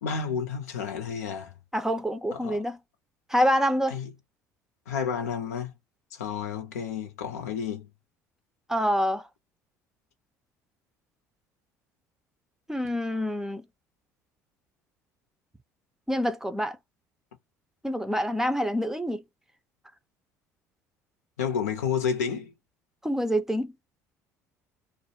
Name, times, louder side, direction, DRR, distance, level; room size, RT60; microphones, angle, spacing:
voice 1, 0.0-1.5 2.3-2.6 3.9-4.1 4.9-5.7 6.1-7.9 21.4-22.5, left 7 dB, 80° left, 0.7 m, -31 dB
voice 2, 1.7-2.8 3.3-4.0 8.7-9.3 12.7-13.6 16.1-16.8 17.8-19.2 23.0-23.7, equal, 5° right, 0.5 m, -26 dB
2.3 x 2.1 x 2.7 m
hypercardioid pair, 60°, 8 cm